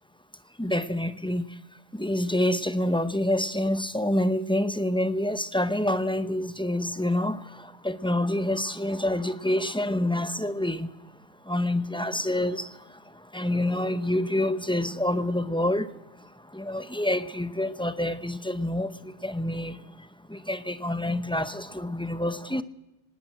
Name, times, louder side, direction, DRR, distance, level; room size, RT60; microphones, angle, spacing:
voice 1, 0.6-1.6 1.9-10.9 11.4-22.6, left 1 dB, 5° left, 0.5 m, -27 dB
18.5 x 18.5 x 9.0 m
omnidirectional pair, 1.2 m